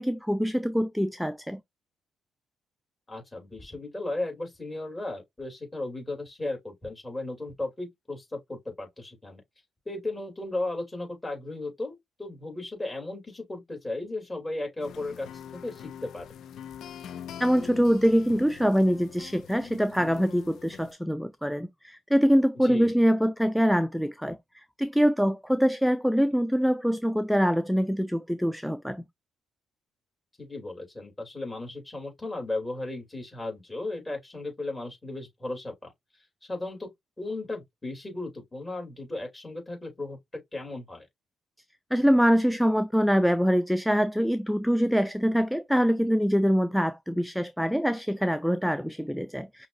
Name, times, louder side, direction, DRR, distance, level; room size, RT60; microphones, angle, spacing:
voice 1, 0.0-1.6 17.4-29.0 41.9-49.7, equal, ahead, 0.4 m, -24 dB
voice 2, 3.1-9.4 9.8-16.2 22.5-22.9 30.4-35.9 36.4-36.9 37.2-40.2 40.5-41.1, left 2 dB, 15° left, 3.1 m, -35 dB
sound 1, 14.8-20.9, left 9 dB, 70° left, 0.4 m, -43 dB
5.7 x 2.8 x 2.6 m
cardioid pair, 90°, 0 cm